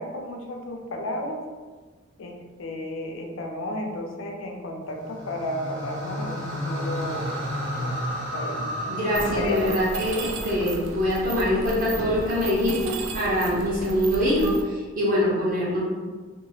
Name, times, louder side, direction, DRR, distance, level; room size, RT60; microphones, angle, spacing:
voice 1, 0.0-1.4 2.2-7.3 7.7-9.9, left 1 dB, 75° left, 3 dB, 0.4 m, -33 dB
sound 1, 4.9-11.2, equal, 70° right, 1.0 m, -32 dB
voice 2, 8.9-15.8, left 1 dB, 45° right, -6 dB, 0.9 m, -24 dB
Mechanisms, 9.1-14.6, right 3 dB, 90° right, 0.3 m, -34 dB
2.8 x 2.3 x 2.7 m, 1.4 s
head